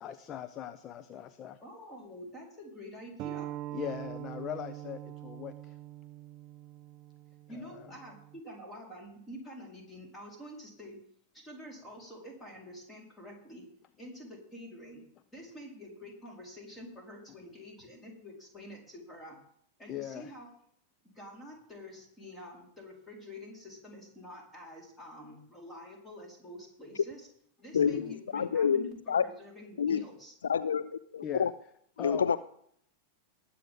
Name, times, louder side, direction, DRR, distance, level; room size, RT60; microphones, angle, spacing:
voice 1, 0.0-1.6 3.7-5.8 7.5-7.9 19.9-20.3 27.8-28.1 31.2-31.5 32.0-32.3, left 10 dB, 30° left, 11 dB, 0.7 m, -40 dB
voice 2, 1.6-3.5 7.5-11.0 11.3-13.6 14.0-15.0 15.3-19.4 19.8-20.5 21.1-27.3 27.6-30.3, equal, 15° left, -1 dB, 4.5 m, -47 dB
sound 1, 3.2-8.4, right 14 dB, 40° right, 0.4 m, -43 dB
voice 3, 27.7-29.3 29.8-30.0 30.4-31.5 32.0-32.4, left 7 dB, 70° left, 13 dB, 0.4 m, -28 dB
19.5 x 8.5 x 3.8 m, 0.67 s
figure-of-eight pair, 90°, 0 cm